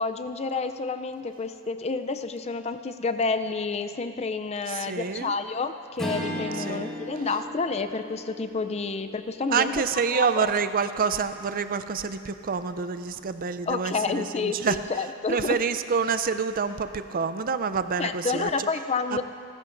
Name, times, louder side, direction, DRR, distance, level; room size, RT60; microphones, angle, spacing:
voice 1, 0.0-9.8 10.1-10.5 13.7-15.6 18.0-19.2, left 4 dB, 30° left, 10 dB, 0.4 m, -29 dB
voice 2, 4.7-5.3 6.6-6.9 9.5-14.8 15.3-18.7 19.1-19.2, right 5 dB, 40° right, 11 dB, 0.4 m, -27 dB
Strum, 6.0-10.6, equal, 5° left, 1.9 m, -37 dB
29.0 x 13.5 x 2.6 m, 2.5 s
head